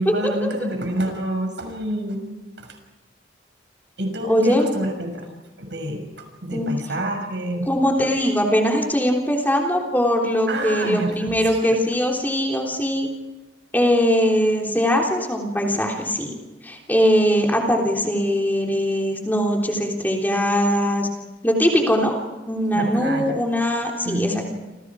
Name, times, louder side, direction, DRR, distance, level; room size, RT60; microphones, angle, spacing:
voice 1, 0.0-2.3 4.0-5.3 5.6-6.0 6.4-7.7 10.5-11.3 11.6-11.7 22.7-23.4 24.0-24.5, right 1 dB, 70° right, 5 dB, 6.5 m, -27 dB
voice 2, 4.3-4.7 6.5-6.7 7.6-13.1 13.7-16.3 16.6-21.1 21.4-22.2 22.5-24.5, equal, 10° left, 0 dB, 3.4 m, -21 dB
28.5 x 28.0 x 5.0 m, 1.1 s
head